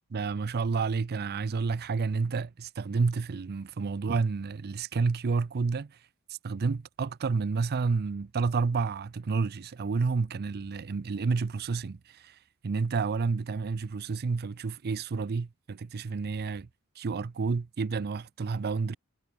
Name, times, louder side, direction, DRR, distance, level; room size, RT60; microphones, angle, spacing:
voice 1, 0.1-6.0 6.4-12.4 12.6-16.7 17.0-19.0, right 4 dB, 45° right, 0.5 m, -30 dB
head